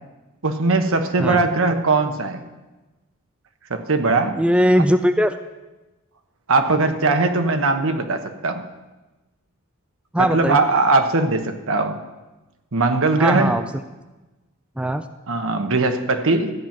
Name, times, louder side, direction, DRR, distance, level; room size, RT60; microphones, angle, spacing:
voice 1, 0.4-2.4 3.7-4.3 6.5-8.6 10.2-12.0 12.7-13.6 15.3-16.5, right 3 dB, 65° right, 7 dB, 1.1 m, -20 dB
voice 2, 4.4-5.4 10.1-10.6 13.2-13.6 14.8-15.1, equal, 5° right, 9 dB, 0.3 m, -19 dB
13.5 x 8.8 x 5.9 m, 1.1 s
head